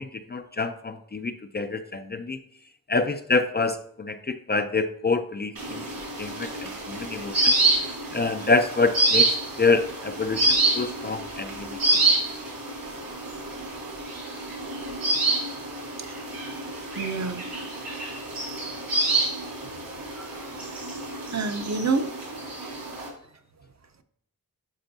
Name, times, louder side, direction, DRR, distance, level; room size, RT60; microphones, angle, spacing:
voice 1, 0.0-2.4 2.9-5.8 6.2-9.3 9.6-12.0 22.6-22.7, left 3 dB, 30° left, 8 dB, 0.4 m, -27 dB
sound 1, 5.5-23.1, right 2 dB, 85° right, 2.9 m, -27 dB
voice 2, 17.0-17.4 19.8-19.9 20.2-20.5 21.3-22.1, right 4 dB, 50° right, 8 dB, 0.7 m, -28 dB
11.5 x 4.4 x 2.6 m, 0.71 s
wide cardioid pair, 95°, 34 cm